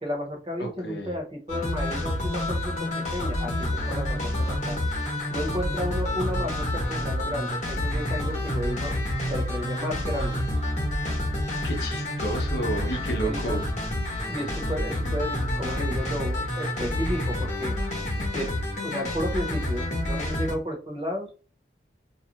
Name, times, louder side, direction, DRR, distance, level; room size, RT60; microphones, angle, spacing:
voice 1, 0.0-4.8 5.3-8.9 9.3-10.4 13.2-13.6 14.3-17.7 18.3-18.5 18.8-21.3, equal, 30° right, 1 dB, 0.8 m, -33 dB
voice 2, 0.6-1.1 11.6-13.6, right 1 dB, 65° left, 4 dB, 0.7 m, -31 dB
sound 1, 1.5-20.5, left 1 dB, 40° left, 0.9 m, -28 dB
2.5 x 2.0 x 3.0 m, 0.37 s
head